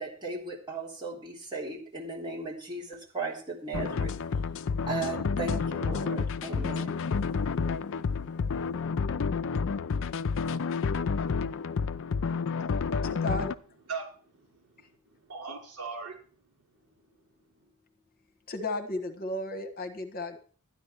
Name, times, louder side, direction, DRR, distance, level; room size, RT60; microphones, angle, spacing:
voice 1, 0.0-4.1 4.9-7.0, right 3 dB, 20° right, 3.5 m, -36 dB
sound 1, 3.7-13.5, left 5 dB, 60° left, 0.5 m, -30 dB
voice 2, 11.9-13.1 13.9-16.2, right 5 dB, 75° right, 5.1 m, -42 dB
voice 3, 13.0-13.5 18.5-20.4, left 2 dB, 40° left, 1.5 m, -34 dB
12.5 x 10.0 x 4.6 m
head